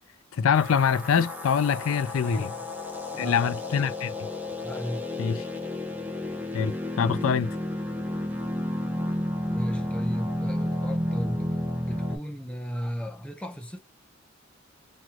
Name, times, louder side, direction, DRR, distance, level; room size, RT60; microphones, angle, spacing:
voice 1, 0.3-2.5 3.2-4.1 5.2-5.4 6.5-7.5, left 7 dB, 90° left, 0.4 m, -24 dB
sound 1, 0.5-12.2, left 1 dB, 10° right, 1.1 m, -31 dB
voice 2, 2.2-2.7 3.1-3.8 4.6-5.0 9.5-11.5 11.9-13.8, equal, 5° left, 0.8 m, -35 dB
3.0 x 3.0 x 2.4 m
head